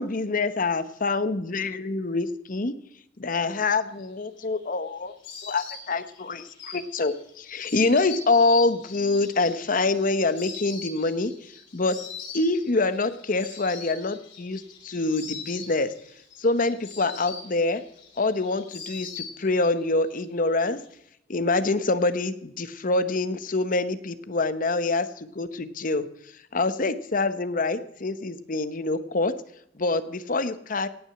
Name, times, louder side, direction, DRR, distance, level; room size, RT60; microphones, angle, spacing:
voice 1, 0.0-2.8 3.2-5.1 5.4-11.3 11.7-12.0 12.3-15.9 16.4-17.8 18.2-20.8 21.3-26.1 26.5-29.3 29.8-30.9, left 3 dB, 50° left, 12 dB, 0.9 m, -25 dB
Insect, 4.1-19.8 20.1-20.9, left 6 dB, 80° left, 7.3 m, -43 dB
17.5 x 6.2 x 8.0 m, 0.73 s
head